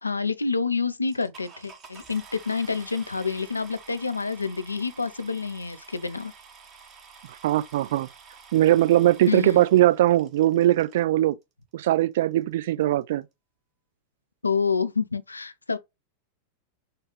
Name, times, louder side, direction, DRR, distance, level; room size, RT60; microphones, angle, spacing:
voice 1, 0.0-6.3 9.3-9.6 14.4-15.8, left 5 dB, 80° left, 0.4 m, -28 dB
sound 1, 1.1-11.0 11.8-11.9 12.4-12.5 12.7-13.0, right 5 dB, 30° right, 1.0 m, -49 dB
voice 2, 7.4-8.1 8.5-11.4 11.7-13.2, right 14 dB, 55° right, 0.4 m, -20 dB
4.4 x 2.3 x 3.1 m
figure-of-eight pair, 90°, 0 cm